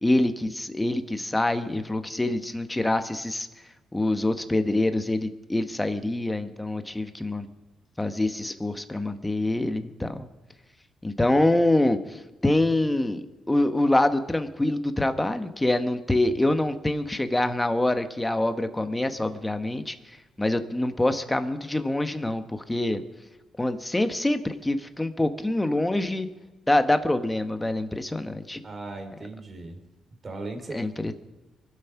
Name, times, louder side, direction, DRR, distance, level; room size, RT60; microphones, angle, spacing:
voice 1, 0.0-3.5 3.9-7.5 8.0-10.3 11.0-19.9 20.4-23.0 23.6-26.3 26.7-28.6 30.7-31.1, left 1 dB, 10° left, 8 dB, 1.1 m, -25 dB
voice 2, 28.6-29.8 30.2-31.1, right 2 dB, 35° right, 5 dB, 2.9 m, -38 dB
23.5 x 8.1 x 6.0 m, 1.1 s
cardioid pair, 90°, 0 cm